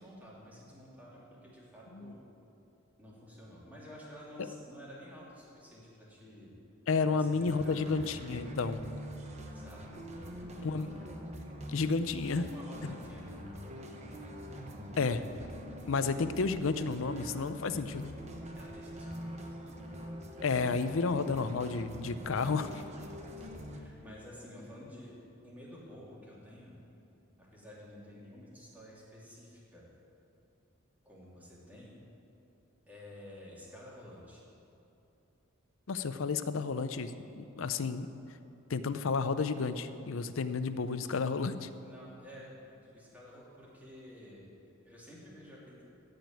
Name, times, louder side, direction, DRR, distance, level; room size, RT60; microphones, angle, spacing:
voice 1, 0.0-2.2 3.0-6.5 7.1-8.1 9.4-11.1 12.3-13.4 18.5-19.8 20.2-20.3 23.4-25.2 25.4-26.8 27.4-29.8 31.0-32.0 32.9-34.4 41.7-45.8, left 1 dB, 10° right, -6 dB, 2.9 m, -51 dB
voice 2, 6.9-8.8 10.6-10.9 11.7-12.4 12.8-12.9 15.0-15.2 15.8-18.1 20.4-22.8 35.9-38.1 38.7-41.7, left 4 dB, 70° left, 11 dB, 0.6 m, -31 dB
sound 1, 7.4-23.8, equal, 35° right, 1.0 m, -44 dB
15.0 x 5.2 x 8.9 m, 2.7 s
head